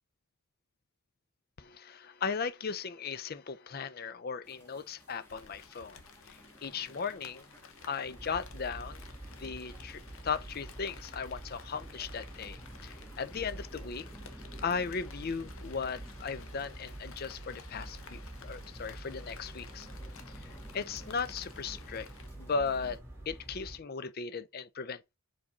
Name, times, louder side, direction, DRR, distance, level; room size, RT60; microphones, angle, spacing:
voice 1, 1.6-6.0 6.3-7.5 7.9-9.0 9.4-14.1 14.6-19.9 20.4-22.1 22.4-23.0 23.3-25.0, left 5 dB, 45° left, 0.5 m, -37 dB
sound 1, 4.4-23.0, equal, 10° left, 1.8 m, -56 dB
Rain, 5.3-22.3, left 5 dB, 65° left, 0.9 m, -54 dB
sound 2, 8.0-23.8, right 1 dB, 10° right, 2.0 m, -47 dB
4.9 x 4.1 x 5.9 m
head